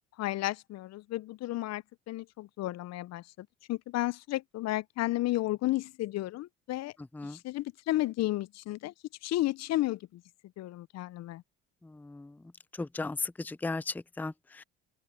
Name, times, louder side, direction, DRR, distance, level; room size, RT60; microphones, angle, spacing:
voice 1, 0.2-6.9 7.2-8.9 9.2-10.2 10.6-11.4, left 16 dB, 60° left, 0.5 m, -33 dB
voice 2, 11.8-12.3 12.8-14.6, left 3 dB, 5° left, 0.5 m, -36 dB
supercardioid pair, 70°, 30 cm